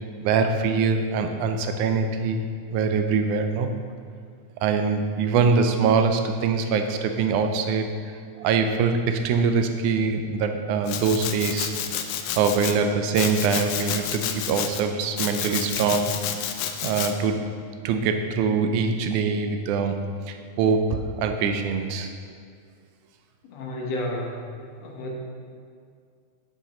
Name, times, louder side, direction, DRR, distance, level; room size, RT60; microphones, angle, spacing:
voice 1, 0.2-2.5 2.7-3.7 4.6-7.9 8.4-11.7 12.4-16.1 16.8-17.5 17.8-22.1, right 5 dB, 85° right, 6 dB, 2.1 m, -23 dB
Domestic sounds home sounds, 10.9-12.7 13.1-14.8 15.2-17.1, left 9 dB, 90° left, 2.1 m, -30 dB
voice 2, 23.4-24.5 24.8-25.1, left 1 dB, 65° left, -1 dB, 2.2 m, -31 dB
8.1 x 7.6 x 4.3 m, 2.2 s
omnidirectional pair, 3.5 m